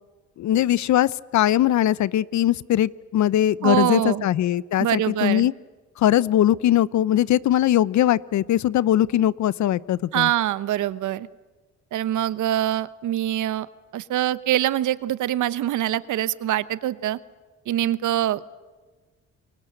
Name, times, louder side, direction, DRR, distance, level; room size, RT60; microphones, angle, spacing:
voice 1, 0.4-5.5 6.0-10.3, left 12 dB, 70° left, 21 dB, 0.8 m, -21 dB
voice 2, 3.6-4.3 4.8-5.5 10.1-11.3 11.9-13.7 13.9-17.2 17.7-18.5, right 12 dB, 80° right, 17 dB, 1.1 m, -24 dB
29.0 x 23.5 x 8.0 m, 1.3 s
cardioid pair, 90°, 30 cm